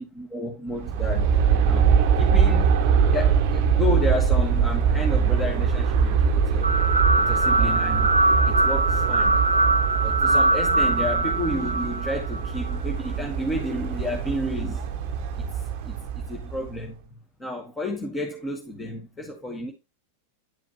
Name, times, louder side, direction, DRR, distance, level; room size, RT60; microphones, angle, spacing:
voice 1, 0.0-1.3 1.6-2.9 3.1-6.8 7.2-8.1 8.5-9.5 10.0-15.0 15.3-17.0 17.4-19.7, left 1 dB, 15° left, 1.5 m, -31 dB
Aircraft, 0.7-16.8, right 6 dB, 45° right, 0.8 m, -23 dB
sound 1, 6.6-12.7, right 2 dB, 80° right, 0.4 m, -22 dB
10.5 x 5.0 x 3.0 m
figure-of-eight pair, 90°, 0 cm